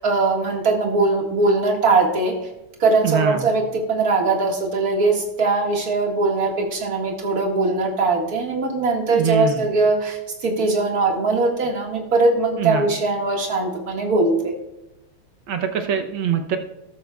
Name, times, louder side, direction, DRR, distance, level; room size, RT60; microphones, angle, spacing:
voice 1, 0.0-2.3 2.8-14.5, right 3 dB, 45° right, 0 dB, 2.2 m, -20 dB
voice 2, 3.0-3.5 9.1-9.6 12.6-12.9 15.5-16.6, right 7 dB, 65° right, 5 dB, 1.5 m, -23 dB
13.5 x 13.0 x 2.3 m, 0.96 s
omnidirectional pair, 2.4 m